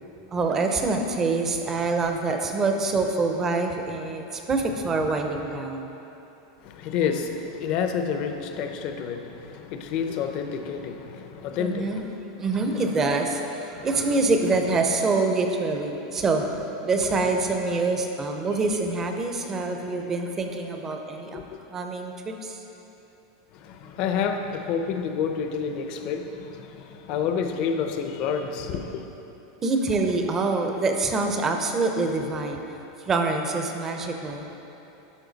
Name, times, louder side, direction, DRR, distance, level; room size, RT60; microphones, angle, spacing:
voice 1, 0.3-5.9 11.6-12.0 12.4-21.4 21.7-22.6 29.6-32.6 33.1-34.5, right 3 dB, 15° right, 4 dB, 0.6 m, -25 dB
voice 2, 6.6-12.0 12.7-12.8 21.3-21.4 23.5-29.1, left 6 dB, 40° left, 6 dB, 0.6 m, -29 dB
11.5 x 5.7 x 4.0 m, 3.0 s
supercardioid pair, 160°, 2 cm